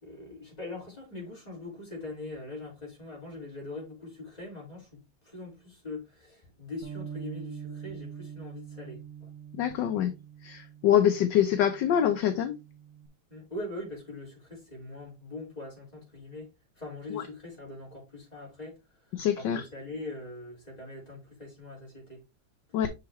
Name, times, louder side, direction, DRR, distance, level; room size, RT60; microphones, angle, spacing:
voice 1, 0.0-4.9 5.2-9.3 13.3-16.5 16.8-18.8 19.4-22.2, left 2 dB, 20° left, 4.2 m, -42 dB
Bass guitar, 6.8-13.1, right 7 dB, 50° right, 1.6 m, -44 dB
voice 2, 9.6-10.1 10.4-12.6 17.1-17.2 19.1-19.7 22.7-22.9, left 10 dB, 70° left, 1.3 m, -25 dB
6.8 x 5.8 x 3.0 m
omnidirectional pair, 2.2 m